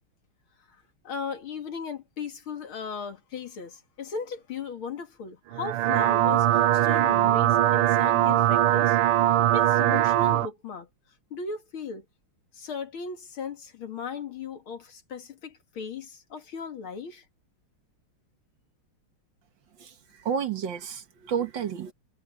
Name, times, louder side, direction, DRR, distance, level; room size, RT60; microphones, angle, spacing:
voice 1, 1.0-9.0 9.5-10.9 11.3-12.0 12.5-17.2, left 5 dB, 70° left, 3.0 m, -37 dB
sound 1, 5.5-10.5, right 12 dB, 85° right, 1.6 m, -21 dB
voice 2, 20.3-21.9, right 7 dB, 60° right, 2.0 m, -30 dB
omnidirectional pair, 2.4 m